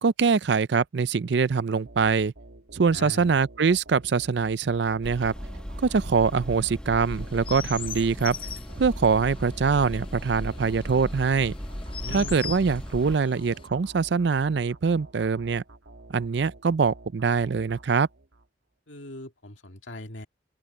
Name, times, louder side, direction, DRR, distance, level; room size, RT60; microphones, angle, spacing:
voice 1, 0.0-2.3 2.7-5.3 5.8-8.4 8.8-11.5 12.1-15.6 16.1-18.1, right 5 dB, 65° right, 0.5 m, -23 dB
sound 1, 1.9-18.5, right 1 dB, 90° right, 2.2 m, -49 dB
voice 2, 2.9-3.4 12.0-12.4 18.9-20.3, left 1 dB, 80° left, 2.2 m, -40 dB
sound 2, 5.0-13.2, equal, 5° left, 1.2 m, -37 dB
Chirp tweet, 7.0-13.7, left 7 dB, 30° left, 0.6 m, -42 dB
open air
head